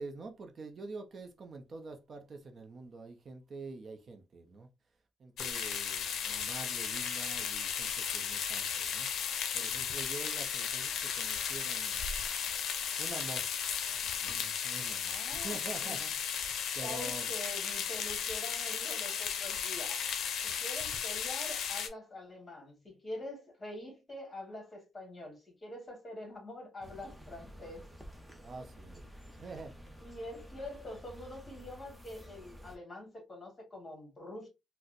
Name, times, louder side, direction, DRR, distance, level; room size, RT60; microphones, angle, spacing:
voice 1, 0.0-4.7 5.2-9.1 9.5-12.1 13.0-13.5 13.9-16.4 16.7-17.3 28.4-29.0 29.4-29.8, right 3 dB, 45° right, 0.6 m, -46 dB
sound 1, 5.4-21.9, left 7 dB, 70° left, 0.5 m, -35 dB
voice 2, 15.1-16.0 16.8-20.0 20.4-27.9 30.0-34.5, left 1 dB, 30° left, 1.6 m, -45 dB
sound 2, 26.8-32.8, equal, 5° right, 0.7 m, -51 dB
4.1 x 2.0 x 2.5 m
cardioid pair, 90°, 0 cm